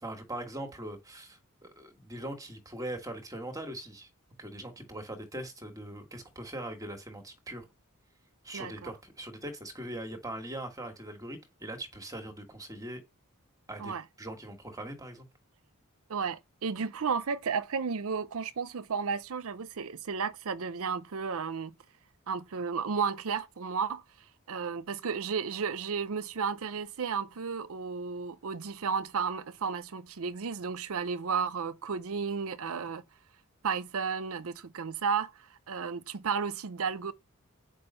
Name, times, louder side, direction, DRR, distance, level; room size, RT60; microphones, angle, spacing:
voice 1, 0.0-4.1 4.4-7.6 8.4-13.0 13.7-15.3, right 1 dB, 15° right, 1.5 m, -41 dB
voice 2, 8.5-8.9 13.8-14.0 16.1-21.7 22.3-24.0 24.5-33.0 33.6-37.1, right 6 dB, 70° right, 0.6 m, -33 dB
8.8 x 5.0 x 5.5 m
head